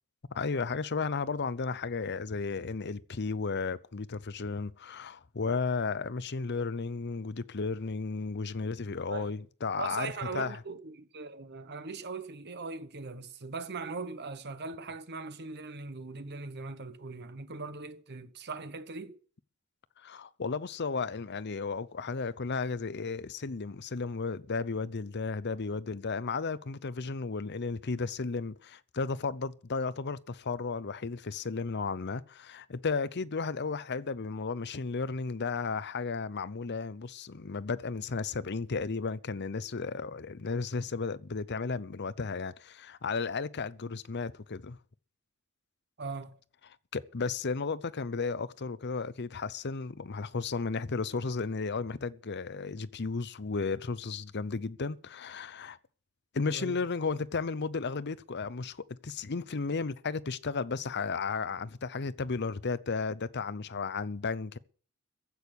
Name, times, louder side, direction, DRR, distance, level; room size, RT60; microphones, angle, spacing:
voice 1, 0.3-10.6 20.0-44.8 46.9-55.8 56.3-64.6, left 4 dB, 50° left, 0.7 m, -34 dB
voice 2, 9.1-9.4 9.8-19.2 46.0-46.4 56.4-56.8, right 4 dB, 50° right, 1.1 m, -40 dB
15.5 x 6.5 x 9.8 m
head